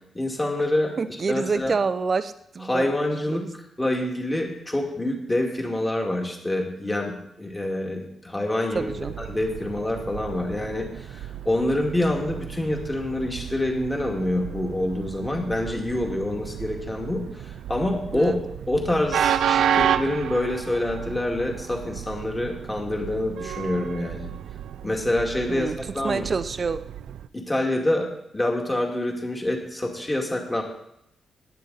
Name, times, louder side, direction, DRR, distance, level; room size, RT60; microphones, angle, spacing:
voice 1, 0.1-0.9 1.3-1.8 2.7-3.4 3.8-18.3 18.7-24.3 24.8-26.2 27.3-28.1 28.3-30.6, left 1 dB, 15° left, 1 dB, 2.2 m, -26 dB
voice 2, 1.0-2.9 3.3-3.5 8.7-9.1 18.1-18.4 25.5-25.8 26.0-26.8, right 4 dB, 35° right, 12 dB, 0.7 m, -27 dB
Train, 8.7-27.3, right 9 dB, 85° right, 0.4 m, -31 dB
15.0 x 9.7 x 4.1 m, 0.78 s
cardioid pair, 125°, 0 cm